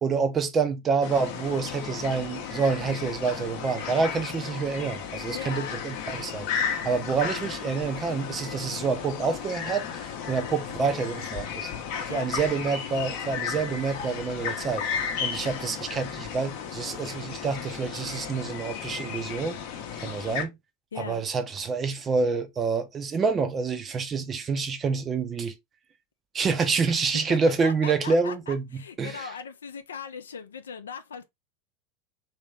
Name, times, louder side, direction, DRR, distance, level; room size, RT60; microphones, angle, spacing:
voice 1, 0.0-11.7 12.1-14.8 15.2-19.6 20.0-20.6 21.0-25.5 26.3-29.3, right 5 dB, 25° right, 0.6 m, -27 dB
sound 1, 1.0-20.4, left 7 dB, 50° left, 0.8 m, -34 dB
voice 2, 5.3-5.8 12.1-12.3 20.9-21.2 26.9-31.2, left 6 dB, 70° left, 0.5 m, -39 dB
3.2 x 2.8 x 3.3 m
figure-of-eight pair, 80°, 0 cm